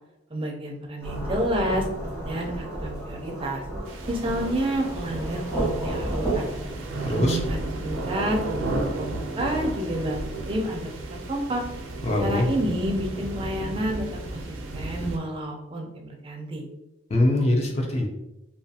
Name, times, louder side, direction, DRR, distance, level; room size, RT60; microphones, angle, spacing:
voice 1, 0.3-1.9 2.3-3.6 4.1-6.5 7.1-11.0 11.3-11.6 12.2-16.6, right 1 dB, 30° right, 1 dB, 0.4 m, -29 dB
Thunderstorm / Rain, 1.0-6.7, right 1 dB, 15° left, 1.1 m, -31 dB
sound 1, 3.9-15.2, right 2 dB, 90° right, 0.4 m, -33 dB
voice 2, 7.0-7.4 12.0-12.5 17.1-18.1, left 1 dB, 35° left, 1 dB, 0.4 m, -22 dB
2.4 x 2.3 x 2.7 m, 0.93 s
head